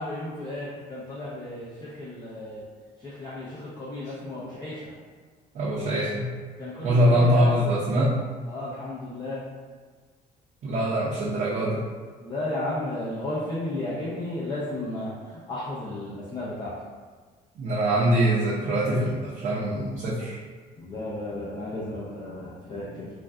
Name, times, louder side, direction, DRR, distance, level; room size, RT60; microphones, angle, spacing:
voice 1, 0.0-2.6 3.0-4.9 6.6-7.6 8.4-9.5 12.2-16.8 20.8-23.1, left 1 dB, 25° left, -8 dB, 0.5 m, -34 dB
voice 2, 5.5-6.3 6.8-8.1 10.6-11.8 17.6-20.4, equal, 50° right, -7 dB, 0.6 m, -23 dB
2.5 x 2.2 x 3.4 m, 1.5 s
cardioid pair, 110°, 17 cm